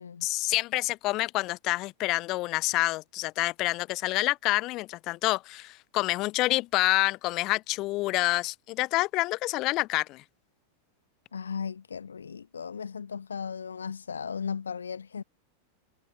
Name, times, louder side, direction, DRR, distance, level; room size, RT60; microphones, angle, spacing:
voice 1, 0.2-10.2, left 19 dB, 40° left, 0.7 m, -28 dB
voice 2, 11.3-15.2, left 6 dB, 70° left, 0.7 m, -36 dB
figure-of-eight pair, 90°, 0 cm